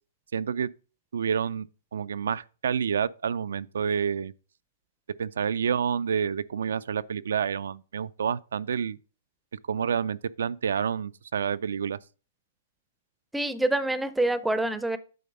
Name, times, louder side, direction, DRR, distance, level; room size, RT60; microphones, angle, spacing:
voice 1, 0.3-0.7 1.1-4.3 5.2-9.0 9.7-12.0, right 7 dB, 85° right, 0.3 m, -29 dB
voice 2, 13.3-15.0, right 2 dB, 5° right, 0.5 m, -26 dB
8.5 x 3.9 x 5.3 m
hypercardioid pair, 150°, 0 cm